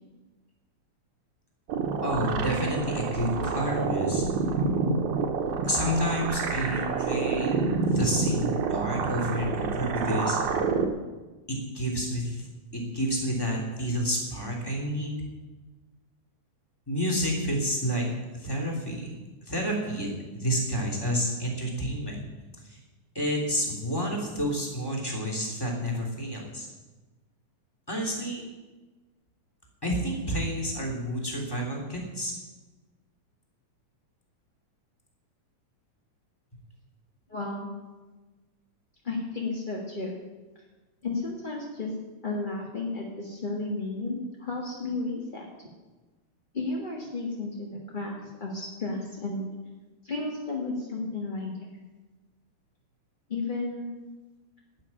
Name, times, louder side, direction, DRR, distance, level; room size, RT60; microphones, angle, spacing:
sound 1, 1.7-10.8, right 4 dB, 75° right, 2.5 m, -28 dB
voice 1, 2.0-4.2 5.6-7.5 7.9-10.4 11.5-12.4 12.7-15.2 16.9-18.1 18.3-19.1 19.5-20.1 20.4-22.2 22.6-22.8 23.1-26.7 27.9-28.4 29.8-32.3, equal, 10° left, 0 dB, 2.8 m, -29 dB
voice 2, 37.3-37.7 39.0-40.1 41.0-41.9 42.2-45.5 46.5-49.4 50.0-51.5 53.3-54.0, left 3 dB, 30° left, -2 dB, 0.9 m, -33 dB
12.5 x 7.1 x 9.9 m, 1.2 s
omnidirectional pair, 3.5 m